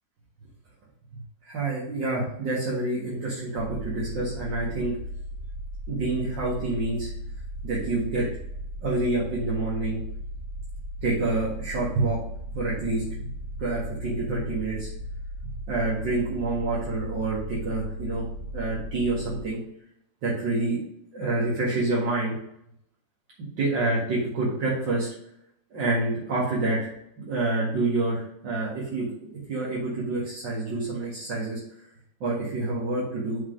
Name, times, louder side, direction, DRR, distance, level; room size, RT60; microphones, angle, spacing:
voice 1, 1.4-5.0 5.9-7.1 7.6-8.3 8.8-10.0 11.0-12.2 12.5-13.3 13.6-14.9 15.4-18.2 18.5-19.6 20.2-20.8 21.1-22.3 23.6-25.1 25.7-26.9 27.2-31.6 32.2-33.4, right 2 dB, 80° right, -7 dB, 2.5 m, -27 dB
sound 1, 3.6-19.4, equal, 35° right, 2.4 m, -36 dB
6.1 x 3.9 x 6.2 m, 0.75 s
omnidirectional pair, 2.0 m